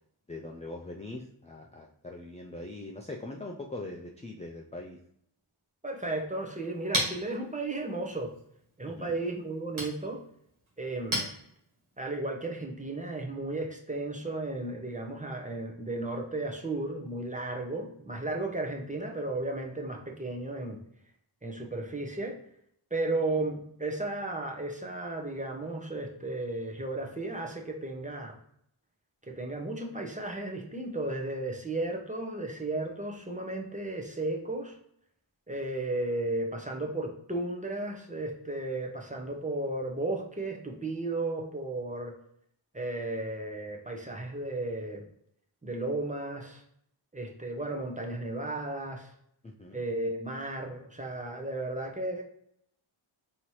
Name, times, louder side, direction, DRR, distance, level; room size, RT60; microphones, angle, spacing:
voice 1, 0.3-5.0 8.9-9.1 49.4-49.8, left 2 dB, 15° left, 0 dB, 0.3 m, -42 dB
voice 2, 5.8-8.3 8.8-10.2 10.8-11.3 12.0-20.8 21.4-22.4 22.9-28.4 29.3-34.8 35.5-42.1 42.7-45.1 45.6-46.6 47.1-49.1 49.7-52.2, right 2 dB, 15° right, 1 dB, 0.7 m, -34 dB
Chink clink, 6.3-12.0, right 1 dB, 75° right, 1.5 m, -38 dB
4.2 x 2.8 x 3.1 m, 0.70 s
wide cardioid pair, 85°, 50 cm